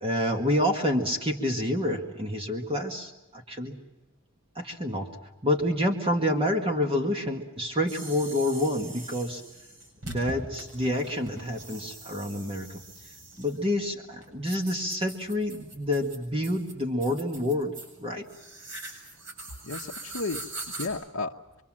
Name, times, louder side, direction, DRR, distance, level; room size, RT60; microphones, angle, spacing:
voice 1, 0.0-3.8 4.5-5.1 5.4-9.4 10.0-12.8 13.4-17.7 18.0-18.2, left 1 dB, 25° right, 3 dB, 1.7 m, -28 dB
sound 1, 7.9-20.9, right 2 dB, 60° right, 7.7 m, -43 dB
voice 2, 19.6-21.6, left 3 dB, 75° left, -1 dB, 0.9 m, -34 dB
25.5 x 24.5 x 7.4 m, 1.1 s
head